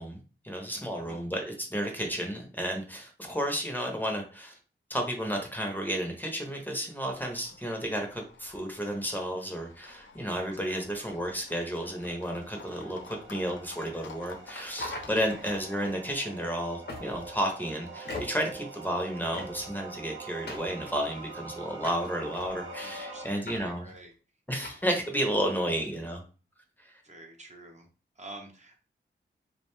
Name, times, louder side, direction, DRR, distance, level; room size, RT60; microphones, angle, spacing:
voice 1, 0.0-4.5 4.9-23.8 24.5-26.2 26.8-27.0, equal, 10° left, 2 dB, 0.6 m, -32 dB
Livestock farm animals working animals, 7.1-15.9, left 5 dB, 80° left, 0.4 m, -51 dB
sound 1, 10.0-23.3, right 3 dB, 80° right, 0.6 m, -45 dB
voice 2, 10.4-11.1 15.2-15.4 22.8-24.1 25.4-25.7 27.0-27.9 28.2-28.8, right 2 dB, 35° right, 2 dB, 0.5 m, -49 dB
sound 2, 14.7-15.6 16.9-17.4 18.0-18.5 19.3-19.8 20.5-21.3 21.8-22.6 23.5-23.6 23.9-24.0 24.5-24.8, left 2 dB, 60° left, 0.8 m, -41 dB
2.4 x 2.1 x 3.0 m, 0.37 s
wide cardioid pair, 80°, 19 cm